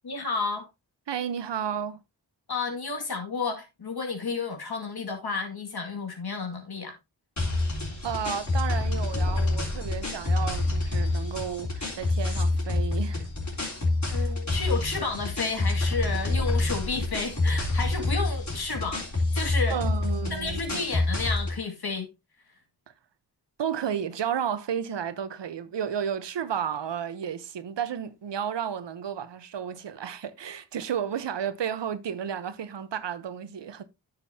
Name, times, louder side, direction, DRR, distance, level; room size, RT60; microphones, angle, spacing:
voice 1, 0.0-0.7 2.5-6.9 14.1-19.1 19.3-19.8 20.3-22.1, left 4 dB, 65° left, 2.2 m, -31 dB
voice 2, 1.1-2.0 7.5-7.6 8.0-13.3 14.1-14.3 19.7-20.8 23.6-33.8, right 8 dB, 90° right, 0.9 m, -32 dB
sound 1, 7.4-21.6, left 2 dB, 40° left, 4.0 m, -27 dB
10.0 x 6.7 x 2.7 m
wide cardioid pair, 60°, 42 cm